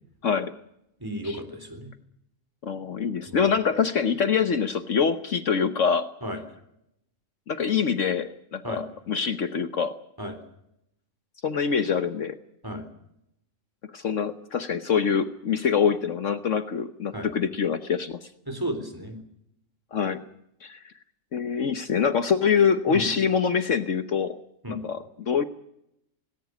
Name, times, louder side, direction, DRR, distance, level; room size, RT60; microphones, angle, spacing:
voice 1, 0.2-0.5 1.2-1.4 2.6-6.1 7.5-10.0 11.4-12.4 13.9-18.3 19.9-20.2 20.6-20.8 21.3-24.4 24.7-25.4, left 6 dB, 60° left, 10 dB, 1.3 m, -25 dB
voice 2, 1.0-1.9 3.3-3.4 6.2-6.4 8.6-8.8 10.2-10.3 12.6-12.8 17.1-17.3 18.5-19.2 22.9-23.1 24.6-24.8, equal, 15° right, 8 dB, 3.8 m, -33 dB
19.5 x 18.0 x 9.2 m, 0.77 s
omnidirectional pair, 1.5 m